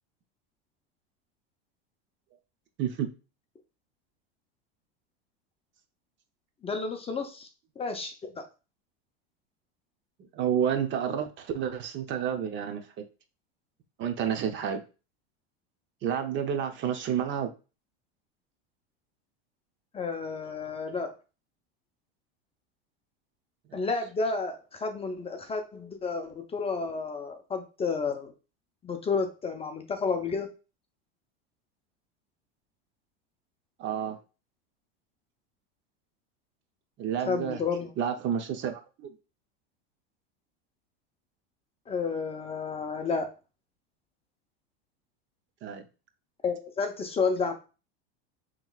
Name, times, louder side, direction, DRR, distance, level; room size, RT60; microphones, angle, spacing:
voice 1, 6.6-7.5 7.8-8.5 19.9-21.1 23.7-28.3 28.8-30.5 37.3-37.9 41.9-43.3 46.4-47.5, left 4 dB, 20° left, 5 dB, 0.6 m, -31 dB
voice 2, 10.3-12.8 14.0-14.8 16.0-17.5 23.7-23.8 33.8-34.2 37.0-37.6 38.0-39.1 45.6-45.8, right 8 dB, 40° right, 6 dB, 0.7 m, -30 dB
5.7 x 3.1 x 2.3 m, 0.31 s
supercardioid pair, 115°, 30 cm